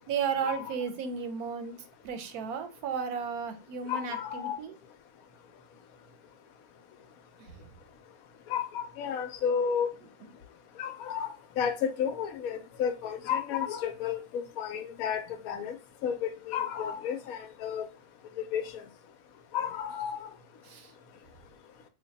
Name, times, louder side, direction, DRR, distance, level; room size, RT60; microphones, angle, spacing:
voice 1, 0.1-1.7 2.0-4.8 20.6-20.9, right 6 dB, 80° right, 1.1 m, -34 dB
voice 2, 3.9-4.5 8.5-9.9 10.8-15.7 16.0-17.9 18.4-18.6 19.5-20.3, left 8 dB, 75° left, 1.0 m, -32 dB
3.2 x 2.1 x 3.9 m
omnidirectional pair, 1.6 m